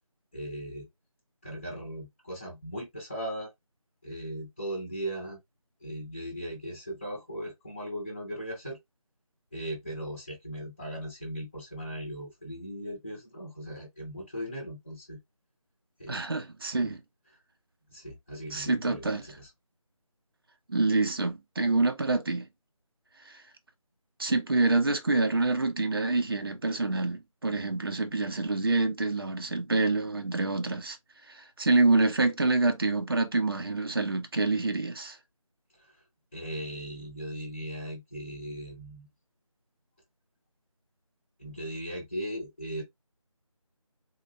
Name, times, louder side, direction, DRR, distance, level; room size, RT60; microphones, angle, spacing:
voice 1, 0.3-0.9 1.4-3.5 4.0-5.4 5.8-8.8 9.5-15.2 16.0-16.2 16.8-16.9 17.9-19.5 35.8-36.0 36.3-39.1 41.4-42.8, equal, 10° left, 0.7 m, -38 dB
voice 2, 16.1-17.0 18.5-19.2 20.7-22.5 24.2-31.0 31.3-35.2, right 3 dB, 40° right, 0.6 m, -27 dB
4.1 x 2.3 x 3.3 m
figure-of-eight pair, 165°, 18 cm